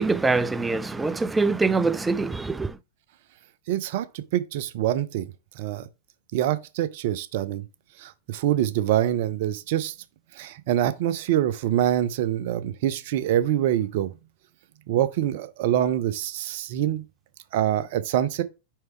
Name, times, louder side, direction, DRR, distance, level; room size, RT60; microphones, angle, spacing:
voice 1, 0.0-2.8, right 3 dB, 10° right, 0.5 m, -24 dB
voice 2, 3.7-5.3 5.6-5.9 6.3-7.6 8.0-9.9 10.4-14.1 14.9-17.0 17.5-18.4, right 11 dB, 50° right, 0.7 m, -25 dB
4.7 x 4.6 x 4.5 m
figure-of-eight pair, 90°, 0 cm